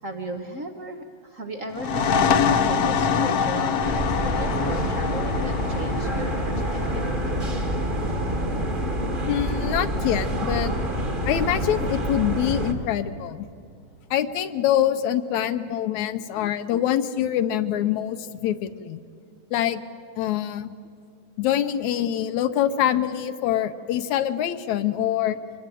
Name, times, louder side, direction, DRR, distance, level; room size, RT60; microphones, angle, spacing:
voice 1, 0.0-3.8 4.2-7.1, right 1 dB, 65° right, 5 dB, 0.7 m, -35 dB
sound 1, 1.7-9.1, left 6 dB, 60° left, 1.9 m, -25 dB
sound 2, 3.8-12.7, equal, 25° right, 1.3 m, -27 dB
voice 2, 9.3-10.7 11.2-13.5 14.1-19.0 19.5-19.8 20.2-20.7 21.4-25.4, left 11 dB, 80° left, 10 dB, 2.2 m, -25 dB
25.0 x 20.5 x 9.2 m, 2.3 s
omnidirectional pair, 3.4 m